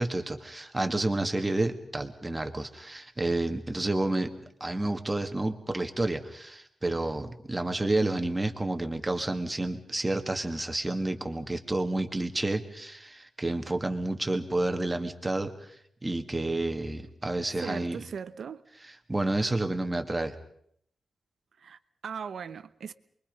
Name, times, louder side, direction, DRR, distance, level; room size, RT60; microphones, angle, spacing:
voice 1, 0.0-4.3 4.6-15.5 16.0-18.0 19.1-20.3, right 2 dB, 15° right, 1.8 m, -30 dB
voice 2, 17.6-18.6 21.6-22.9, right 6 dB, 70° right, 0.9 m, -39 dB
29.0 x 22.5 x 5.3 m
wide cardioid pair, 140°, 0 cm